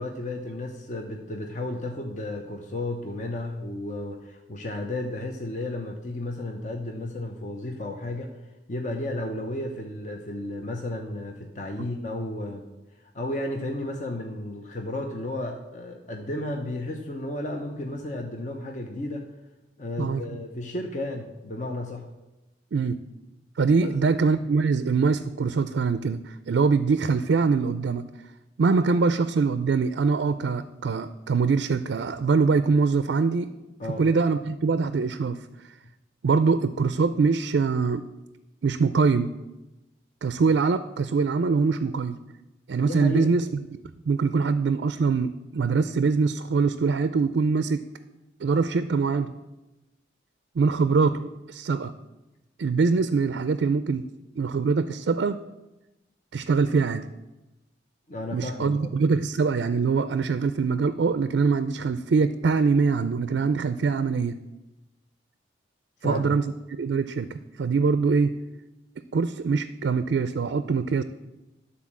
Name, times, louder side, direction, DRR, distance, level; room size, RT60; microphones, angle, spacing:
voice 1, 0.0-8.4 8.7-12.7 13.1-19.3 19.8-22.1 23.8-23.9 33.8-34.1 42.8-43.3 58.1-58.9 66.0-66.4, left 1 dB, 40° left, 2 dB, 0.7 m, -33 dB
voice 2, 23.6-28.0 28.6-33.5 34.0-35.7 36.2-38.0 38.6-39.3 40.2-42.2 42.7-43.5 44.1-47.9 48.4-49.3 50.6-51.9 52.6-54.0 54.4-55.4 56.3-57.0 58.3-64.4 66.0-68.3 69.1-71.0, right 4 dB, 75° right, 12 dB, 0.4 m, -23 dB
11.5 x 4.2 x 7.3 m, 1.0 s
head